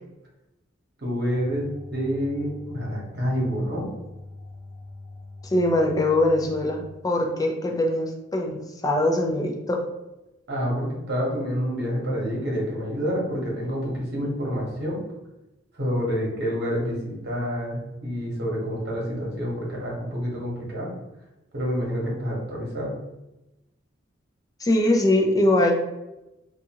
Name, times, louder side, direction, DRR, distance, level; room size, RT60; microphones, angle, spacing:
voice 1, 1.0-3.9 10.5-15.0 15.7-20.9 21.5-22.9, equal, 55° right, -3 dB, 1.0 m, -28 dB
sound 1, 1.3-6.9, left 2 dB, ahead, 0.9 m, -43 dB
voice 2, 5.4-9.8 24.6-25.7, left 1 dB, 20° left, 2 dB, 0.4 m, -22 dB
2.6 x 2.3 x 2.8 m, 0.96 s
head